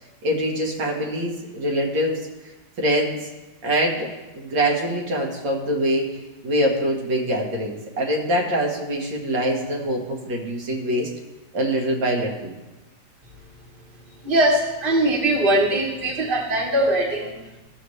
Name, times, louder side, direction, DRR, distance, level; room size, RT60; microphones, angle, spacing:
voice 1, 0.2-2.2 2.8-3.2 3.6-4.1 4.3-6.2 6.4-11.1 11.5-12.5, equal, 85° right, 0 dB, 2.1 m, -24 dB
voice 2, 14.2-17.3, right 1 dB, 35° right, 1 dB, 1.4 m, -21 dB
15.0 x 6.7 x 3.2 m, 1.1 s
omnidirectional pair, 1.9 m